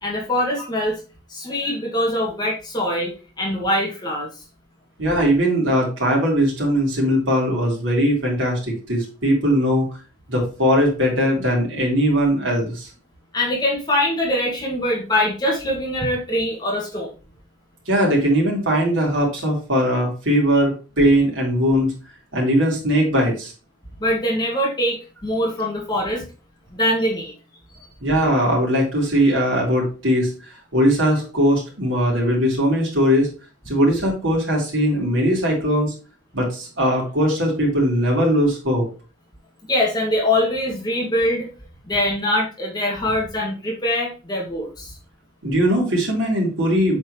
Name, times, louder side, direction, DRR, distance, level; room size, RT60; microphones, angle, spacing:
voice 1, 0.0-1.0 1.3-4.4 13.3-17.1 24.0-26.2 26.7-27.3 27.8-27.9 39.7-41.5 41.9-45.0, left 1 dB, 20° left, -2 dB, 2.3 m, -23 dB
voice 2, 5.0-9.9 10.3-12.9 17.9-21.9 22.3-23.5 28.0-30.3 30.7-33.3 33.7-35.9 36.3-38.9 45.4-47.0, equal, 85° right, -2 dB, 3.4 m, -20 dB
8.0 x 4.6 x 3.2 m, 0.33 s
head